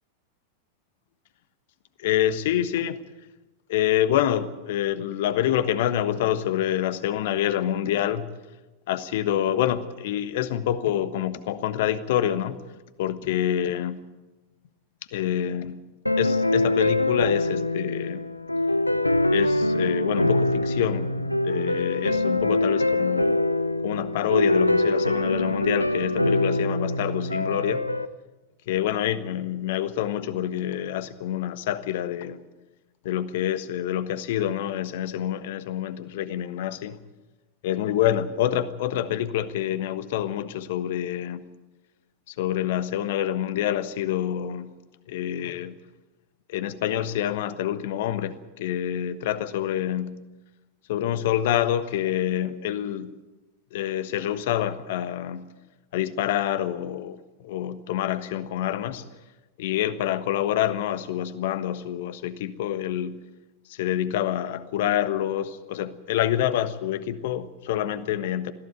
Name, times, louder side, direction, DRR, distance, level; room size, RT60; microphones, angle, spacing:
voice 1, 2.0-3.0 3.7-8.3 8.9-12.6 13.0-14.0 15.1-15.8 16.2-18.2 19.3-23.4 23.8-27.8 28.7-32.4 33.0-37.0 37.6-41.4 42.4-44.7 45.1-45.8 46.5-50.2 50.9-53.1 53.7-55.5 55.9-57.2 57.4-59.0 59.6-63.2 63.8-68.5, left 11 dB, 55° left, 13 dB, 1.3 m, -27 dB
sound 1, 16.1-28.1, left 1 dB, 85° left, 0.7 m, -24 dB
21.0 x 15.0 x 9.2 m, 1.1 s
figure-of-eight pair, 90°, 0 cm